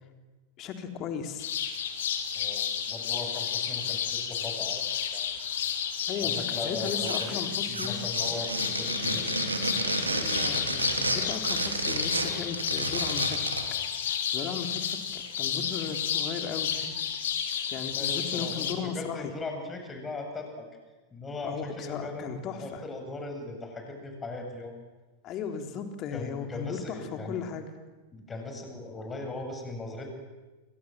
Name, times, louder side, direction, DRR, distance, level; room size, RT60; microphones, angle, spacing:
voice 1, 0.6-1.5 6.1-8.0 10.1-13.6 14.3-17.0 17.7-19.3 21.4-22.8 25.2-27.7, left 6 dB, 35° left, 5 dB, 3.8 m, -36 dB
sound 1, 1.4-18.7, left 8 dB, 60° left, 3.2 m, -31 dB
voice 2, 2.3-5.3 6.2-7.4 7.7-9.3 17.9-20.7 21.1-24.7 26.1-27.4 28.1-30.1, left 2 dB, 15° left, 4 dB, 7.5 m, -39 dB
sound 2, 6.8-7.5 7.7-13.7, right 2 dB, 80° right, 3.3 m, -31 dB
29.5 x 25.0 x 7.8 m, 1.2 s
figure-of-eight pair, 90°, 0 cm